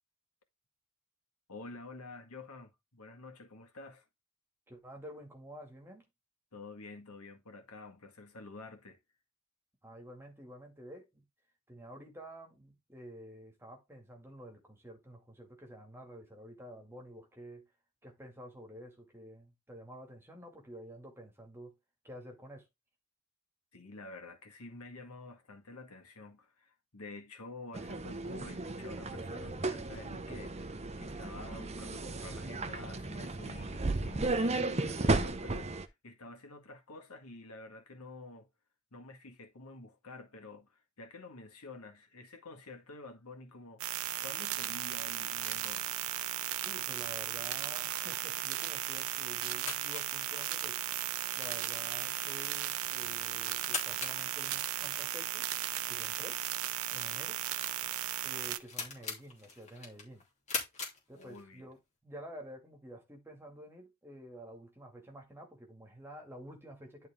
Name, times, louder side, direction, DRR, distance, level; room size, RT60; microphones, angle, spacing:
voice 1, 1.5-4.1 6.5-9.0 23.7-38.5 38.9-43.8 44.2-46.0 61.1-61.7, left 2 dB, 85° left, 1.9 m, -49 dB
voice 2, 4.7-6.1 9.8-11.2 11.7-17.7 18.0-21.8 22.0-22.7 46.6-50.8 51.3-55.5 55.9-56.4 56.9-57.4 58.2-60.2 61.1-67.1, equal, 10° right, 2.2 m, -50 dB
sound 1, 27.7-35.9, right 2 dB, 30° right, 0.8 m, -34 dB
sound 2, 43.8-58.6, right 12 dB, 70° right, 0.7 m, -36 dB
sound 3, 46.1-61.8, left 4 dB, 30° left, 3.0 m, -45 dB
11.0 x 4.1 x 3.6 m
head